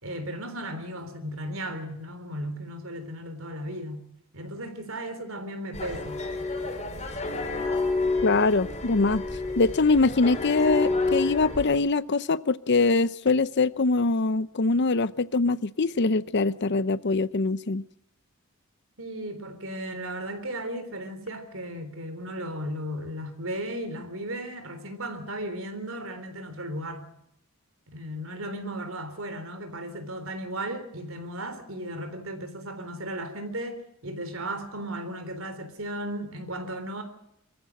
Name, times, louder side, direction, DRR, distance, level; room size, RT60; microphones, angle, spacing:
voice 1, 0.0-6.2 19.0-27.1 27.9-37.0, right 1 dB, 65° right, 3.6 m, -35 dB
sound 1, 5.7-11.7, left 3 dB, 30° left, 4.4 m, -29 dB
voice 2, 8.2-9.2 9.6-17.8, left 3 dB, 50° left, 0.7 m, -23 dB
24.0 x 15.0 x 7.6 m
head